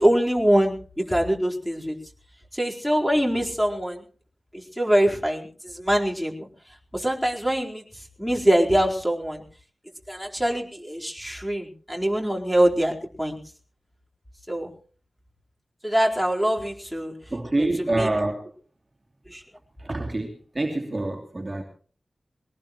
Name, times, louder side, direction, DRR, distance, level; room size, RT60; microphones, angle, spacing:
voice 1, 0.0-1.9 2.5-4.0 4.5-6.5 6.9-9.4 10.1-13.4 14.5-14.7 15.8-17.1 18.0-18.1 19.3-19.4, right 1 dB, ahead, -1 dB, 4.3 m, -24 dB
voice 2, 17.3-18.5 19.8-21.6, right 2 dB, 25° right, 1 dB, 2.9 m, -26 dB
22.5 x 18.5 x 3.1 m, 0.42 s
wide cardioid pair, 105°, 0 cm